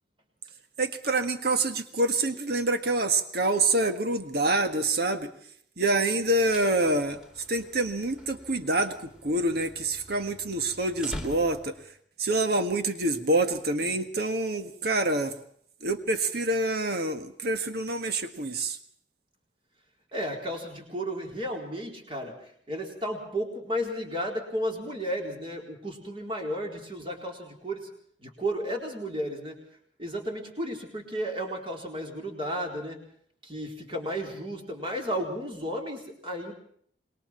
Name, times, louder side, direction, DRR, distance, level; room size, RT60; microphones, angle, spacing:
voice 1, 0.8-5.3 5.8-7.2 7.5-11.7 12.2-15.3 15.8-18.8, right 2 dB, 60° right, 8 dB, 1.6 m, -26 dB
sound 1, 6.2-12.0, left 1 dB, 5° right, 2.8 m, -45 dB
voice 2, 20.1-22.3 22.7-27.9 28.2-29.5 30.0-33.0 33.4-36.5, equal, 30° right, 1 dB, 4.3 m, -33 dB
27.0 x 21.5 x 4.5 m, 0.63 s
head